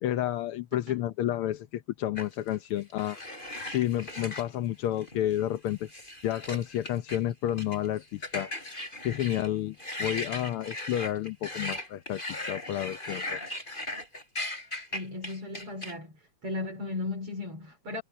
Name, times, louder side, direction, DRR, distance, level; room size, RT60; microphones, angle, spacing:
voice 1, 0.0-3.2 3.6-5.9 6.2-8.5 9.0-13.4, left 12 dB, 75° left, 1.2 m, -30 dB
sound 1, 2.2-4.5 5.0-5.4 5.7-7.2 7.5-7.9 8.2-9.5 9.8-15.9, left 1 dB, 15° left, 6.8 m, -38 dB
voice 2, 14.9-16.1 16.4-18.0, left 3 dB, 45° right, 5.6 m, -36 dB
omnidirectional pair, 3.4 m